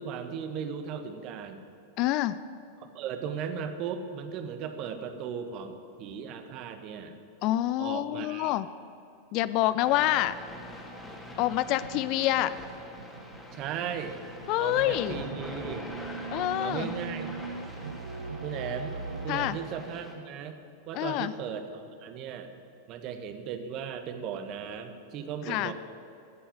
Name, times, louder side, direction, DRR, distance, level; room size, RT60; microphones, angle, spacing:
voice 1, 0.0-1.6 2.8-7.2 7.8-8.6 13.5-14.2 14.6-15.9 16.6-17.3 18.4-19.0 19.2-20.6 20.9-22.5 22.9-25.7, right 7 dB, 40° right, 8 dB, 1.3 m, -37 dB
voice 2, 2.0-2.4 7.4-8.7 9.3-10.4 11.4-12.6 14.5-15.2 16.3-16.9 19.3-19.6 20.9-21.3 25.5-25.7, left 14 dB, 40° left, 15 dB, 0.4 m, -27 dB
sound 1, 9.8-20.1, left 1 dB, 5° left, 2.5 m, -43 dB
sound 2, 11.4-19.5, right 4 dB, 70° right, 0.4 m, -41 dB
14.0 x 8.6 x 9.4 m, 2.7 s
figure-of-eight pair, 90°, 0 cm